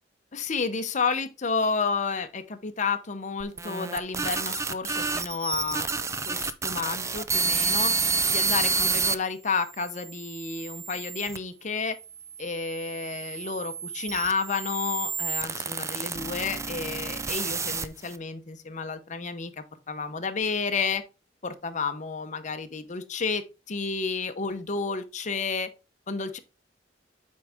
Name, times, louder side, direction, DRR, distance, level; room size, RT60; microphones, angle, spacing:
voice 1, 0.3-5.9 6.3-7.9 8.3-12.0 12.4-21.0 21.4-25.7 26.1-26.4, left 5 dB, 40° left, 0.8 m, -31 dB
sound 1, 3.4-9.2 9.8-11.4 12.2-18.2, right 4 dB, 15° right, 0.4 m, -29 dB
7.6 x 4.7 x 3.6 m
head